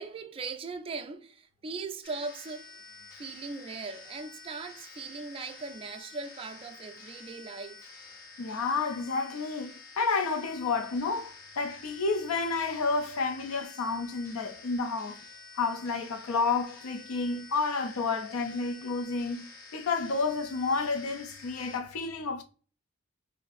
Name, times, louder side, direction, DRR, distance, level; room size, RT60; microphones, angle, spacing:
voice 1, 0.0-2.8 3.2-7.8, right 4 dB, 25° right, 0.3 m, -39 dB
sound 1, 2.0-21.8, left 4 dB, 45° left, 0.8 m, -49 dB
voice 2, 8.4-15.1 15.6-22.4, left 4 dB, 75° left, 0.4 m, -30 dB
2.7 x 2.5 x 3.9 m
head